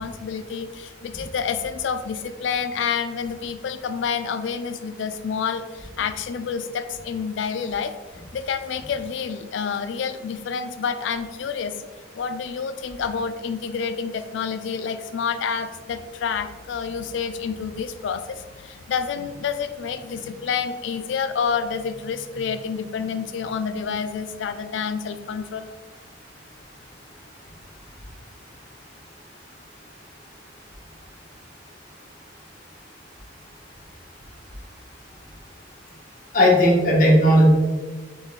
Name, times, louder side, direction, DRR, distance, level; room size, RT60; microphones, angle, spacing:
voice 1, 0.0-7.9 8.3-11.7 12.2-25.7, left 6 dB, 75° left, 9 dB, 0.3 m, -28 dB
voice 2, 36.3-37.5, equal, 45° left, -3 dB, 1.1 m, -15 dB
3.8 x 3.0 x 3.9 m, 1.3 s
head